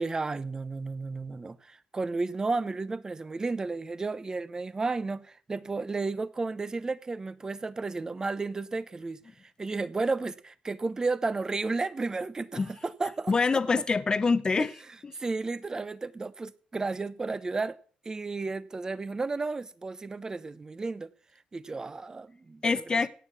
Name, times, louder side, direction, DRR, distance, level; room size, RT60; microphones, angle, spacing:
voice 1, 0.0-9.2 9.6-13.3 14.6-14.7 15.1-17.8 18.0-21.1 21.5-23.0, right 3 dB, 25° right, 0.9 m, -33 dB
voice 2, 13.3-14.7 15.0-15.1 22.6-23.1, left 4 dB, 30° left, 0.8 m, -25 dB
17.0 x 8.3 x 6.0 m
cardioid pair, 105°, 3 cm